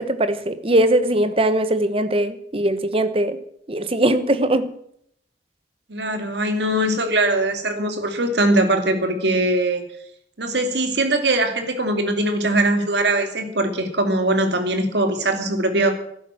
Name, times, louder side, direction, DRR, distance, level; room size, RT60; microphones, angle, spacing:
voice 1, 0.0-3.4 3.7-4.7, right 1 dB, 30° right, 12 dB, 1.0 m, -20 dB
voice 2, 5.9-9.8 10.4-15.9, right 1 dB, 75° right, 6 dB, 2.5 m, -21 dB
12.0 x 10.5 x 8.8 m, 0.71 s
head